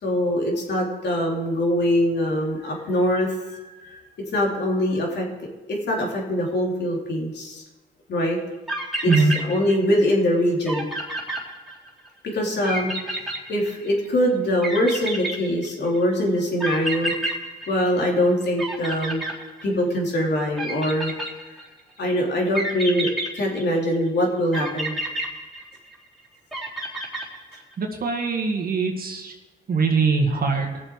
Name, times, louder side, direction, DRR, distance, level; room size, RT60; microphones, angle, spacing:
voice 1, 0.0-4.0 4.3-5.3 5.9-7.6 8.1-8.4 9.0-10.9 12.3-17.1 17.7-19.2 19.6-21.1 21.5-21.6 22.0-25.0, equal, 60° left, -1 dB, 3.5 m, -23 dB
sound 1, 8.4-8.5 8.7-10.0 10.3-10.4 10.7-12.1 12.6-14.1 14.6-16.0 16.6-18.3 18.6-20.0 20.6-21.8 22.5-24.0 24.5-26.1 26.5-27.7, right 1 dB, ahead, 3.8 m, -30 dB
voice 2, 27.8-29.3 29.7-30.8, right 4 dB, 50° right, 2 dB, 2.0 m, -22 dB
19.5 x 7.1 x 4.8 m, 1.1 s
cardioid pair, 90°, 20 cm